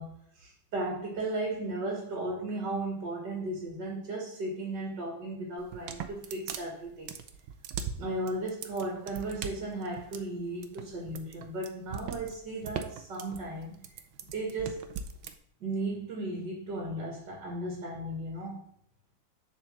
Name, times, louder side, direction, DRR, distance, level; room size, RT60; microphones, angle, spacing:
voice 1, 0.0-7.1 8.0-14.9 15.6-18.7, right 2 dB, 60° right, 0 dB, 2.2 m, -35 dB
sound 1, 5.6-15.3, right 7 dB, 75° right, 1.4 m, -40 dB
7.1 x 4.6 x 5.9 m, 0.67 s
omnidirectional pair, 2.2 m